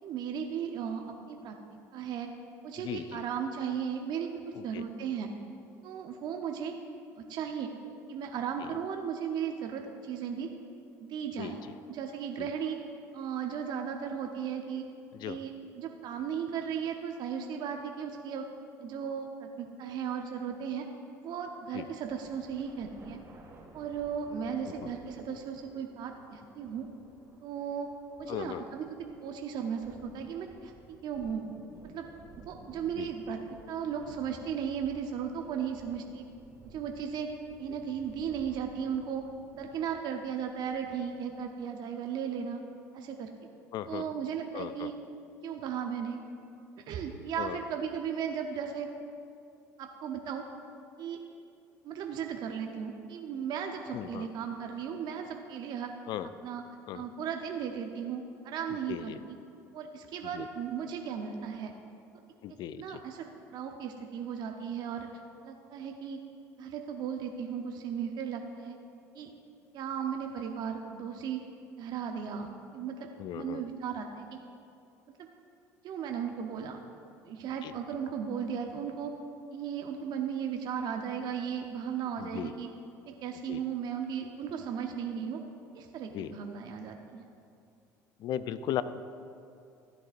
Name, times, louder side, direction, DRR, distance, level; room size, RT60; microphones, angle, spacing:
voice 1, 0.0-1.6 1.9-2.3 2.6-5.3 5.8-6.8 7.3-7.7 8.1-10.5 11.0-11.6 11.9-12.8 13.1-14.9 15.2-18.5 18.8-20.9 21.2-23.2 23.7-26.8 27.4-27.9 28.2-30.7 31.0-31.4 31.9-32.1 32.5-36.3 36.6-39.3 39.5-42.6 42.9-43.3 43.9-45.0 45.4-46.2 46.9-48.9 49.8-50.5 51.0-51.2 51.8-55.9 56.4-56.6 56.9-59.1 59.7-61.7 62.5-65.1 65.4-66.2 66.6-68.7 69.1-69.3 69.7-71.4 71.8-73.1 73.3-74.4 75.8-76.8 77.2-79.1 79.5-82.7 83.0-85.4 85.7-87.3, right 7 dB, 55° right, 4 dB, 0.8 m, -36 dB
voice 2, 2.8-3.2 4.5-4.8 8.6-8.7 11.4-11.6 12.4-12.5 15.1-15.4 21.7-21.8 24.8-24.9 28.3-28.6 33.0-33.1 43.7-44.1 44.5-44.9 47.4-47.6 53.9-54.3 56.1-56.3 56.9-57.0 58.9-59.2 60.3-60.5 62.4-63.0 73.2-73.6 77.6-77.7 82.2-82.5 83.5-83.6 86.1-86.3 88.2-88.8, left 11 dB, 55° left, 13 dB, 0.5 m, -37 dB
sound 1, 22.0-41.6, right 1 dB, 35° right, 2.2 m, -55 dB
15.5 x 10.0 x 2.6 m, 2.5 s
hypercardioid pair, 65°, 9 cm